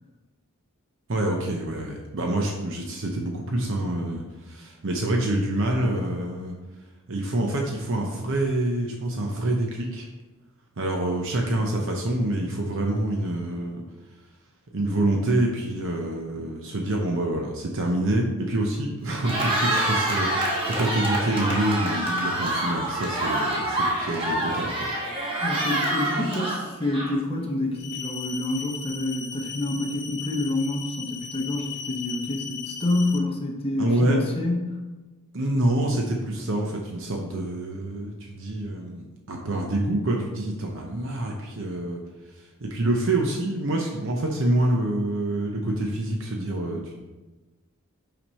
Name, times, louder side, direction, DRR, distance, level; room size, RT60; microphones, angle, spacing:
voice 1, 1.1-6.6 7.1-10.1 10.8-13.8 14.7-24.9 33.8-34.2 35.3-42.0 42.3-47.2, right 1 dB, 60° right, 1 dB, 0.7 m, -26 dB
Cheering, 19.1-27.4, right 1 dB, 25° right, 1.2 m, -26 dB
voice 2, 25.4-34.8, left 2 dB, 25° left, 1 dB, 0.9 m, -28 dB
sound 1, 27.8-33.2, left 7 dB, 50° left, 0.6 m, -37 dB
5.9 x 5.1 x 4.1 m, 1.2 s
head